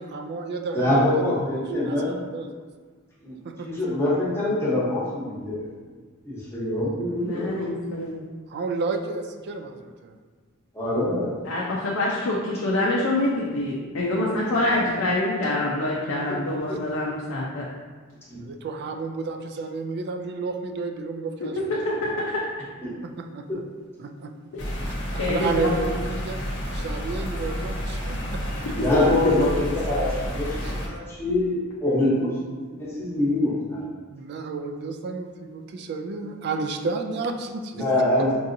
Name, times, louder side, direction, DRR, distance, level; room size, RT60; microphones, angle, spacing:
voice 1, 0.0-1.1 1.8-2.5 3.4-3.8 8.5-10.2 18.4-21.8 23.0-23.5 24.0-24.3 24.9-26.4 26.7-29.0 30.6-30.8 34.1-37.9 38.2-38.3, right 3 dB, 50° right, 5 dB, 0.3 m, -31 dB
voice 2, 0.7-2.2 3.2-3.4 3.6-5.7 6.2-7.5 10.7-11.3 16.3-16.4 16.7-16.8 18.3-18.4 22.8-22.9 23.5-23.6 28.7-30.6 30.9-32.3 32.8-33.8 37.7-38.3, left 1 dB, 10° left, -8 dB, 0.9 m, -24 dB
voice 3, 7.2-8.1 11.5-17.6 21.7-22.1 24.5-24.6 25.2-25.6, left 2 dB, 80° left, -4 dB, 0.5 m, -25 dB
sound 1, 24.6-30.9, equal, 55° left, 0.8 m, -30 dB
4.6 x 2.7 x 2.6 m, 1.5 s
head